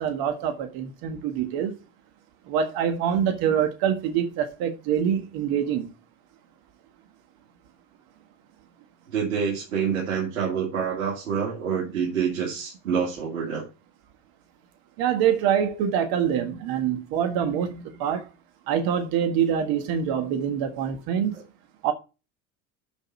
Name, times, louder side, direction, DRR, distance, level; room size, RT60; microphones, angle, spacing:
voice 1, 0.0-1.7 2.5-5.9 15.0-18.2 18.7-21.3 21.8-21.9, right 8 dB, 65° right, 1.6 m, -25 dB
voice 2, 9.1-13.6 21.3-21.4, right 7 dB, 85° right, 2.7 m, -27 dB
6.3 x 5.3 x 6.9 m
hypercardioid pair, 75°, 40 cm